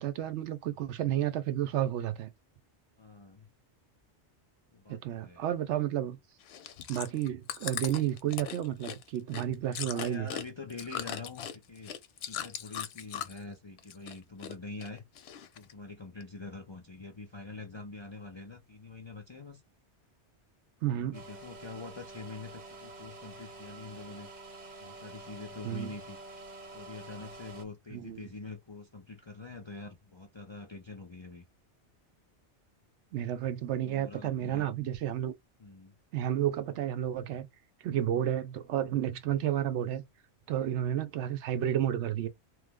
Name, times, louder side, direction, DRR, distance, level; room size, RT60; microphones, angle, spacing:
voice 1, 0.0-2.3 4.9-6.2 6.9-10.3 20.8-21.2 25.6-25.9 27.9-28.3 33.1-35.3 36.1-37.5 37.8-40.0 40.5-42.3, right 11 dB, 80° right, 0.9 m, -31 dB
voice 2, 3.0-3.5 4.7-5.5 9.8-11.9 12.3-15.0 15.5-19.6 20.8-24.3 24.8-26.2 26.7-31.4 33.8-34.7 35.6-35.9, left 3 dB, 40° left, 0.4 m, -45 dB
Chewing mastication, 6.4-13.5 13.8-14.5 14.8-15.7 16.2-16.3, left 9 dB, 70° left, 0.8 m, -39 dB
sound 1, 21.1-27.6, right 2 dB, 45° right, 0.8 m, -48 dB
3.1 x 2.0 x 3.4 m
omnidirectional pair, 1.2 m